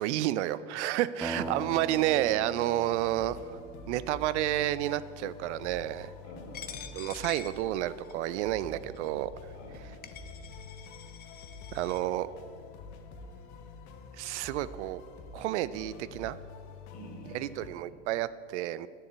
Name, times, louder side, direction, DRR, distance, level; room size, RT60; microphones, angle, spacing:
voice 1, 0.0-3.6 3.9-6.1 6.9-9.3 11.7-12.3 14.2-15.0 15.3-16.4 17.3-18.9, right 14 dB, 70° right, 16 dB, 0.5 m, -30 dB
sound 1, 1.2-5.0, right 2 dB, 10° right, 1.0 m, -41 dB
voice 2, 1.3-1.9 6.2-6.8 9.5-9.9 16.9-17.9, left 1 dB, 70° left, -1 dB, 3.4 m, -46 dB
sound 2, 2.9-17.7, left 4 dB, 50° left, 1.2 m, -48 dB
Coin (dropping), 6.5-8.3 9.0-9.1 9.7-9.8 10.0-12.0, left 7 dB, 25° left, 0.9 m, -46 dB
10.0 x 7.1 x 8.0 m, 2.2 s
hypercardioid pair, 95°, 36 cm